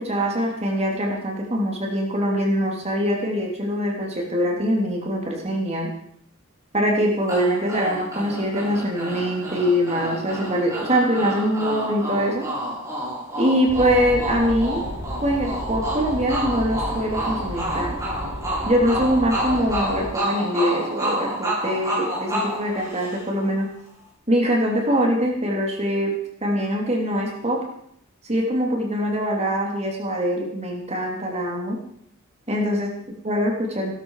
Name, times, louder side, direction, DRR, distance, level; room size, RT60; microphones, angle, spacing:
voice 1, 0.0-5.9 6.7-12.5 13.4-14.8 15.2-18.0 18.6-23.7 24.3-26.1 26.4-27.6 28.2-31.8 32.5-32.9 33.2-33.9, equal, 30° right, -1 dB, 3.3 m, -23 dB
sound 1, 7.3-23.5, right 1 dB, 15° right, 7.5 m, -29 dB
sound 2, 13.7-20.1, equal, 50° left, 7.5 m, -33 dB
18.5 x 12.5 x 5.0 m, 0.69 s
head